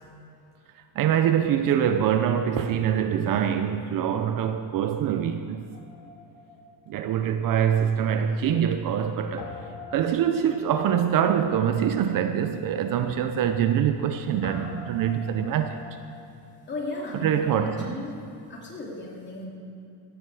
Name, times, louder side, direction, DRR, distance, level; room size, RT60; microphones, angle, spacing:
voice 1, 1.0-5.6 6.9-9.5 9.9-15.8 17.2-17.9, right 9 dB, 50° right, 8 dB, 0.6 m, -24 dB
Guitar, 5.7-8.1 8.4-8.5 9.4-17.2, left 3 dB, 85° left, 3.0 m, -46 dB
voice 2, 16.7-18.2 18.5-19.5, left 2 dB, 25° left, -3 dB, 2.9 m, -35 dB
16.5 x 12.0 x 4.8 m, 2.6 s
cardioid pair, 155°, 45 cm